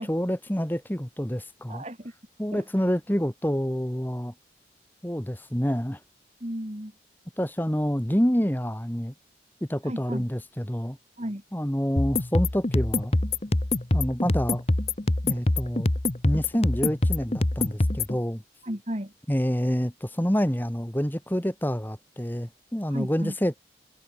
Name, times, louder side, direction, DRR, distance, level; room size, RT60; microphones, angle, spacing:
voice 1, 0.0-1.8 2.4-4.3 5.0-6.0 7.4-9.1 9.7-11.0 11.5-13.1 13.9-14.6 15.2-15.9 16.2-18.4 19.3-23.6, equal, 10° left, 1.5 m, -27 dB
voice 2, 1.7-2.2 2.5-2.8 6.4-6.9 9.8-10.3 11.2-11.4 18.6-19.1 22.9-23.4, equal, 35° right, 3.7 m, -34 dB
sound 1, 12.0-18.2, left 2 dB, 35° left, 1.0 m, -25 dB
head